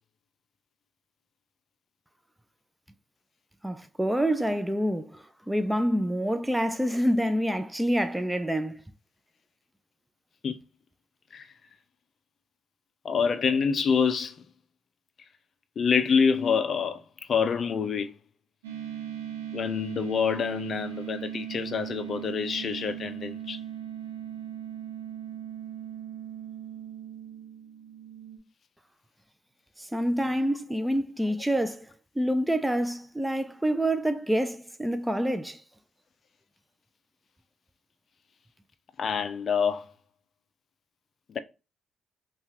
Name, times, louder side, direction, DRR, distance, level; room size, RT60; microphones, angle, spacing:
voice 1, 3.6-8.8 29.8-31.9 32.2-35.6, equal, 10° right, 0.5 m, -27 dB
voice 2, 13.0-14.4 15.8-17.0 17.3-18.1 19.5-23.6 39.0-39.8 41.3-41.4, left 6 dB, 55° left, 0.4 m, -26 dB
sound 1, 18.6-28.4, right 10 dB, 90° right, 0.8 m, -38 dB
5.5 x 2.4 x 2.8 m
hypercardioid pair, 40°, 0 cm